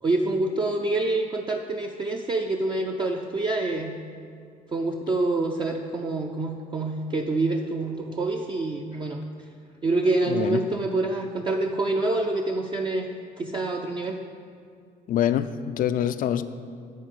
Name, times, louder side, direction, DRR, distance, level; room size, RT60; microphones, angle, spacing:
voice 1, 0.0-4.0 4.7-9.2 9.8-13.1 13.4-14.2, right 2 dB, 30° right, 2 dB, 0.5 m, -26 dB
voice 2, 10.3-10.6 15.1-16.4, left 10 dB, 55° left, 11 dB, 0.4 m, -25 dB
11.0 x 4.4 x 6.6 m, 2.3 s
cardioid pair, 110°, 17 cm